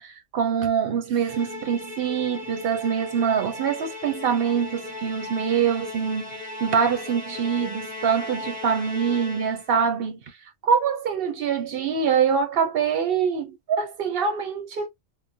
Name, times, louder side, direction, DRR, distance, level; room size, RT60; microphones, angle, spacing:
voice 1, 0.0-10.2 10.6-14.9, right 7 dB, 60° right, 0.7 m, -24 dB
Musical instrument, 1.2-9.8, left 2 dB, 10° right, 0.6 m, -37 dB
3.0 x 2.1 x 2.6 m
omnidirectional pair, 1.3 m